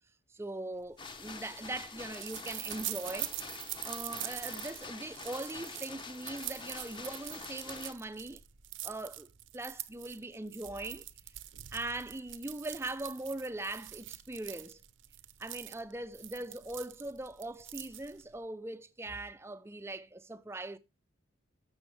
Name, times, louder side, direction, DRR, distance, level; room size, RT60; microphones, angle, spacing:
voice 1, 0.3-3.3 3.8-8.4 8.8-9.3 9.5-11.1 11.7-14.8 15.4-20.8, right 2 dB, 10° right, 0.4 m, -41 dB
sound 1, 0.9-18.4, right 16 dB, 70° right, 0.7 m, -44 dB
sound 2, 1.0-7.9, left 4 dB, 25° left, 0.8 m, -46 dB
13.5 x 6.3 x 3.2 m
head